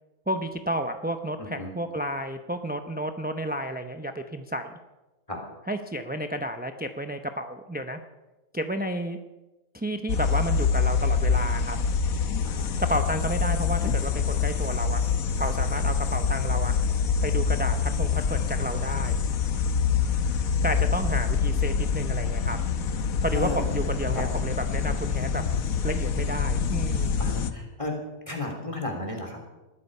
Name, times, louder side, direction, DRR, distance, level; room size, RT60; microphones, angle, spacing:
voice 1, 0.3-4.7 5.7-8.0 8.5-9.2 9.7-11.8 12.8-15.1 15.4-16.8 17.2-19.2 20.6-22.6 23.2-25.4 25.8-27.1, right 1 dB, 10° right, 7 dB, 0.4 m, -31 dB
voice 2, 1.4-1.7 5.3-5.4 12.4-12.7 23.3-23.6 24.1-24.2 27.2-27.9 28.3-29.4, left 2 dB, 20° left, 1 dB, 3.5 m, -33 dB
sound 1, 10.1-27.5, left 6 dB, 80° left, 1.4 m, -25 dB
20.0 x 13.0 x 5.5 m, 1.1 s
omnidirectional pair, 1.5 m